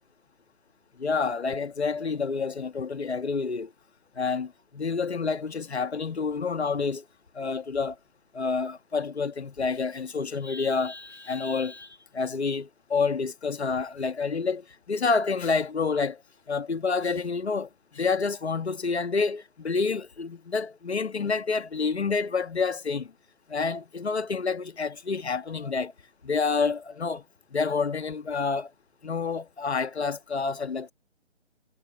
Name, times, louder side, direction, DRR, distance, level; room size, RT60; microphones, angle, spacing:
voice 1, 1.0-3.7 4.2-4.5 4.8-7.0 7.3-7.9 8.3-16.2 16.5-23.1 23.5-25.9 26.2-27.2 27.5-28.7 29.0-30.9, left 4 dB, 65° left, 1.6 m, -28 dB
figure-of-eight pair, 145°, 35 cm